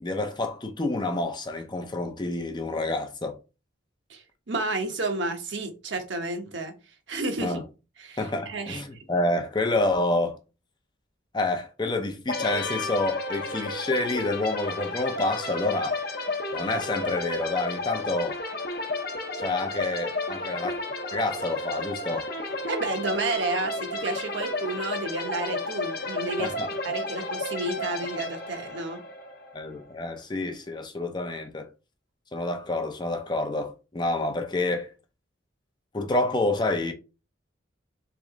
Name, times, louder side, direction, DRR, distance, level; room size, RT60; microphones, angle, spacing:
voice 1, 0.0-3.4 7.4-7.6 8.2-10.4 11.3-16.0 16.5-18.4 19.4-20.8 21.1-22.3 26.4-26.7 29.5-31.7 32.3-34.9 35.9-36.9, left 2 dB, 25° left, 0.5 m, -28 dB
voice 2, 4.1-6.7 7.1-7.6 8.0-9.0 22.7-26.5 26.8-29.0, right 2 dB, 75° right, 1.0 m, -31 dB
sound 1, 12.3-29.9, left 2 dB, 55° left, 0.8 m, -32 dB
4.1 x 3.3 x 3.7 m
head